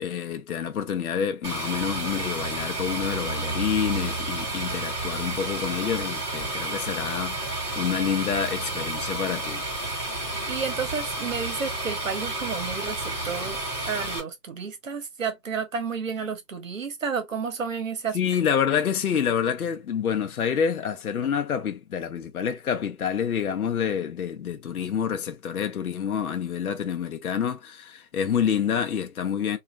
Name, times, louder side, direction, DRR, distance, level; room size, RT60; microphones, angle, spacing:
voice 1, 0.0-9.6 18.1-29.6, left 8 dB, 60° left, 0.7 m, -27 dB
sound 1, 1.4-14.2, right 2 dB, 10° right, 0.8 m, -31 dB
voice 2, 10.4-13.6 13.9-18.2, right 5 dB, 50° right, 0.9 m, -31 dB
3.0 x 2.4 x 2.4 m
hypercardioid pair, 160°, 49 cm